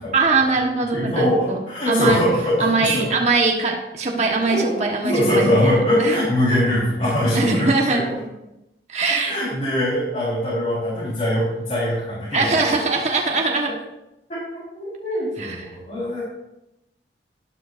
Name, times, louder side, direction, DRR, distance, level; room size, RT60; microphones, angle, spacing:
voice 1, 0.1-1.6 1.9-2.2 2.6-5.7 6.0-6.2 7.3-8.0 8.9-9.3 12.3-13.7 15.4-15.5, right 3 dB, 40° right, 0 dB, 1.3 m, -21 dB
voice 2, 0.9-3.0 4.5-4.7 5.0-8.0 9.2-12.5 14.3-14.4 14.7-16.2, equal, 40° left, -10 dB, 4.3 m, -22 dB
12.0 x 12.0 x 2.6 m, 0.92 s
head